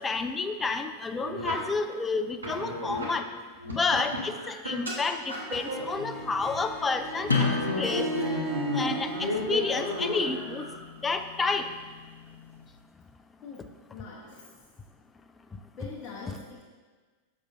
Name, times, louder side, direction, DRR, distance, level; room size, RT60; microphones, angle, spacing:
voice 1, 0.0-3.3 3.7-7.5 7.8-8.1 8.7-10.6 11.0-11.7 16.3-16.4, left 4 dB, 15° left, 8 dB, 0.4 m, -30 dB
sound 1, 1.2-1.5 2.4-3.1 3.6-4.9 5.3-6.9 7.2-10.8, left 1 dB, 75° right, 1.2 m, -33 dB
Harp, 5.4-10.7, right 3 dB, 35° right, 0.9 m, -38 dB
sound 2, 7.3-12.7, left 4 dB, 80° left, 0.8 m, -34 dB
voice 2, 13.4-14.5 15.8-16.6, left 4 dB, 35° left, -4 dB, 0.8 m, -43 dB
6.4 x 6.0 x 2.6 m, 1.4 s
figure-of-eight pair, 90°, 0 cm